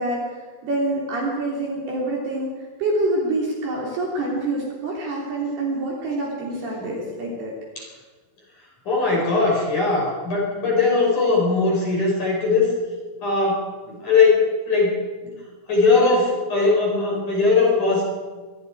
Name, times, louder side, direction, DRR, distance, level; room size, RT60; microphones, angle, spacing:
voice 1, 0.0-2.5 2.8-7.5, right 2 dB, 55° right, -3 dB, 5.1 m, -26 dB
voice 2, 8.9-12.7 13.2-15.3 15.7-18.1, left 3 dB, 40° left, -2 dB, 6.3 m, -20 dB
24.5 x 22.5 x 4.9 m, 1.4 s
omnidirectional pair, 5.6 m